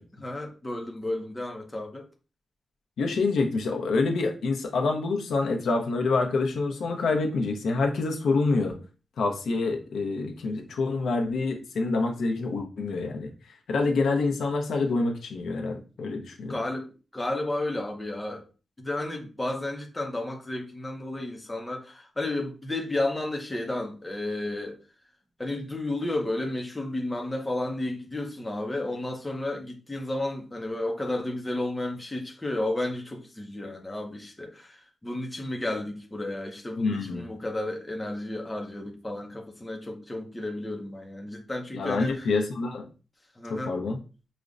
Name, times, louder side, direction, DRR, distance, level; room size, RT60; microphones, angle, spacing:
voice 1, 0.2-2.1 6.2-6.3 16.5-16.9 17.1-18.4 18.8-24.8 25.4-42.3 43.4-43.8, left 1 dB, 10° left, 0.6 m, -32 dB
voice 2, 3.0-8.8 9.2-13.3 13.7-16.6 36.8-37.3 41.7-42.9 43.5-44.0, left 3 dB, 85° left, 0.6 m, -27 dB
4.9 x 2.1 x 2.5 m
wide cardioid pair, 165°, 0 cm